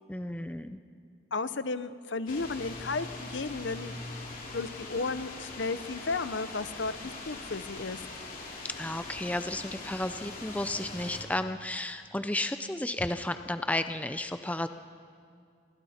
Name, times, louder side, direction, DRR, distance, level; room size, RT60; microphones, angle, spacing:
voice 1, 0.1-0.8 8.6-14.7, left 1 dB, 5° left, 9 dB, 0.5 m, -33 dB
voice 2, 1.3-4.0 4.5-8.0, left 3 dB, 65° left, 13 dB, 0.8 m, -34 dB
sound 1, 2.3-11.2, left 2 dB, 45° left, 3.1 m, -42 dB
29.0 x 24.0 x 4.4 m, 2.2 s
head